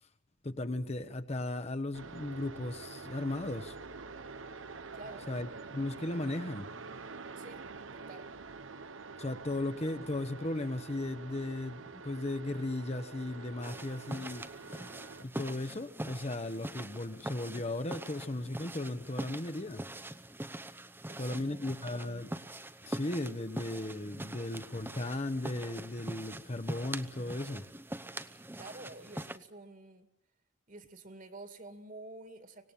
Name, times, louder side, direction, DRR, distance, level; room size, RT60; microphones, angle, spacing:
voice 1, 0.4-3.7 5.3-6.7 9.2-14.8 15.2-19.8 21.2-22.3 22.8-27.7, left 2 dB, 35° left, 9 dB, 1.1 m, -36 dB
sound 1, 1.9-15.2, right 4 dB, 80° right, 1.1 m, -47 dB
voice 2, 4.9-5.3 7.4-7.6 7.9-8.3 21.1-21.8 28.5-30.1 30.7-32.7, right 2 dB, 45° right, 9 dB, 2.2 m, -49 dB
sound 2, 13.6-29.4, right 1 dB, 10° right, 0.8 m, -43 dB
25.0 x 19.0 x 8.8 m, 0.78 s
head